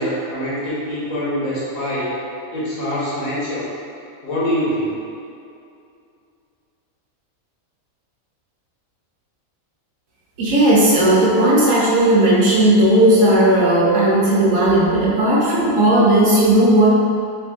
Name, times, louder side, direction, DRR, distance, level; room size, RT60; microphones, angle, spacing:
voice 1, 0.0-2.1 2.5-3.7 4.2-5.0, equal, 85° left, -7 dB, 1.4 m, -24 dB
voice 2, 10.4-16.9, right 1 dB, 75° right, -6 dB, 1.2 m, -15 dB
3.4 x 2.5 x 3.5 m, 2.5 s
omnidirectional pair, 1.4 m